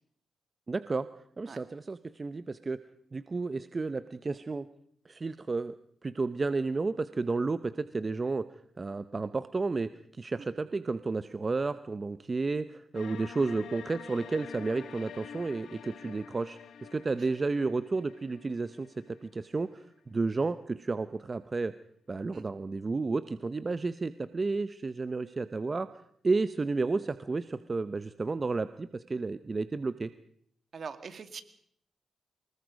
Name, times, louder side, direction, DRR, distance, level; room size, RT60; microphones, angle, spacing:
voice 1, 0.7-1.1 1.4-2.8 3.1-4.6 5.1-5.7 6.0-8.4 8.8-16.6 16.9-21.7 22.1-25.9 26.2-30.1, right 3 dB, 35° right, 13 dB, 0.8 m, -32 dB
sound 1, 12.9-19.9, left 8 dB, 80° left, 1.1 m, -47 dB
voice 2, 30.7-31.4, right 5 dB, 55° right, 10 dB, 2.2 m, -43 dB
24.5 x 20.5 x 5.2 m, 0.67 s
cardioid pair, 80°, 0 cm